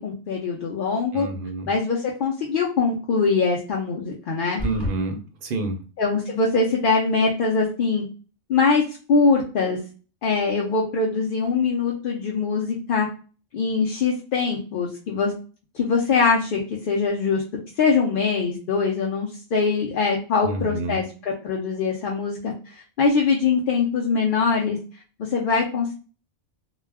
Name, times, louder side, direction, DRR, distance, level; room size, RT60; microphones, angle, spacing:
voice 1, 0.0-1.3 1.7-4.6 6.0-8.0 8.5-9.8 10.2-13.1 13.5-15.3 15.7-17.4 17.8-25.9, left 4 dB, 60° left, -2 dB, 0.6 m, -23 dB
voice 2, 1.1-1.7 4.6-5.8 20.4-21.0, right 2 dB, 60° right, 5 dB, 0.6 m, -28 dB
sound 1, 4.6-5.0, equal, 5° left, 1.0 m, -29 dB
2.3 x 2.1 x 3.3 m, 0.36 s
omnidirectional pair, 1.2 m